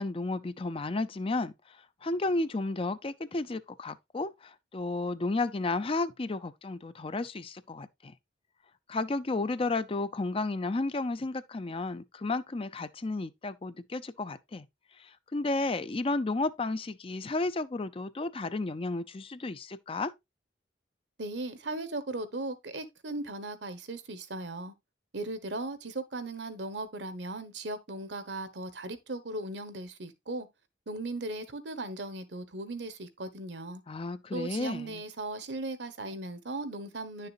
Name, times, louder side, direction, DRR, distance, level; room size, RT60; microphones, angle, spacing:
voice 1, 0.0-8.1 8.9-14.7 15.0-20.1 33.9-35.0, left 2 dB, 30° left, 0.5 m, -32 dB
voice 2, 21.2-24.7 25.1-30.5 30.9-33.8 34.3-37.3, right 2 dB, 65° right, 1.2 m, -37 dB
10.5 x 6.7 x 2.5 m
head